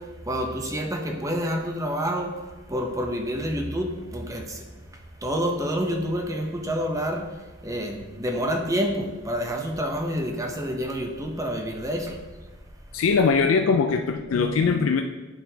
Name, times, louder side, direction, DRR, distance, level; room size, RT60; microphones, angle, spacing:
voice 1, 0.0-4.7 5.2-12.2, equal, 15° right, 3 dB, 0.6 m, -28 dB
voice 2, 12.9-15.0, left 5 dB, 80° left, 5 dB, 0.4 m, -21 dB
9.0 x 5.7 x 2.8 m, 1.2 s
head